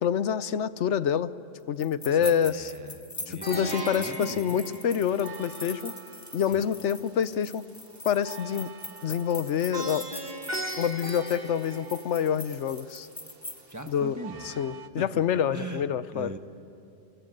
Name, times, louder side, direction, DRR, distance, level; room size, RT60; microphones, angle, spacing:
voice 1, 0.0-1.3 1.7-2.7 3.3-6.0 6.3-7.6 8.0-8.7 9.0-10.1 10.8-13.1 13.9-14.2 14.4-16.3, left 8 dB, 75° left, 15 dB, 1.1 m, -27 dB
sound 1, 1.8-13.9, left 1 dB, 15° left, 1.2 m, -43 dB
voice 2, 2.0-4.6 6.5-6.7 13.7-14.7 15.0-16.4, right 1 dB, 15° right, 6 dB, 1.5 m, -41 dB
Plucked string instrument, 3.4-5.6 9.7-12.3, right 1 dB, 35° right, 2.0 m, -37 dB
sound 2, 3.9-14.9, right 8 dB, 55° right, 1.1 m, -50 dB
29.0 x 26.0 x 7.8 m, 2.8 s
omnidirectional pair, 1.2 m